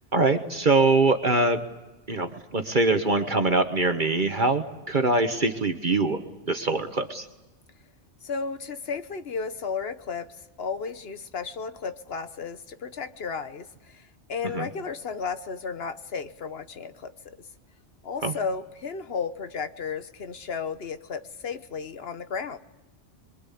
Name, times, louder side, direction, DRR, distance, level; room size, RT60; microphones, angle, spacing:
voice 1, 0.1-1.6 2.1-6.2 6.5-7.3 14.5-14.7 18.2-18.3, right 3 dB, 45° right, 7 dB, 1.4 m, -23 dB
voice 2, 8.2-10.3 10.6-17.5 18.0-22.6, left 5 dB, 60° left, 11 dB, 1.3 m, -34 dB
26.5 x 22.5 x 8.5 m, 1.1 s
omnidirectional pair, 1.2 m